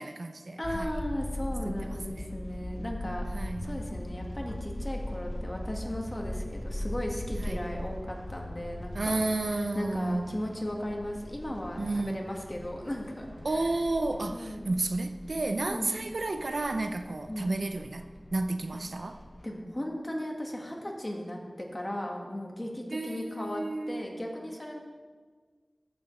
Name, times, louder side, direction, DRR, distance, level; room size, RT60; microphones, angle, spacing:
voice 1, 0.0-0.9 1.6-2.3 3.3-3.8 7.4-7.6 8.9-10.4 11.8-12.2 13.4-18.0 18.3-19.2 22.9-24.2, right 2 dB, 80° right, 7 dB, 0.5 m, -32 dB
sound 1, 0.6-19.4, left 1 dB, 45° left, 0.9 m, -40 dB
voice 2, 0.6-3.2 3.6-9.2 9.5-13.3 13.5-13.7 14.3-14.7 15.7-15.9 17.3-17.5 19.4-24.8, left 1 dB, 30° left, 0 dB, 1.7 m, -36 dB
14.5 x 7.1 x 3.2 m, 1.5 s
wide cardioid pair, 55°, 0 cm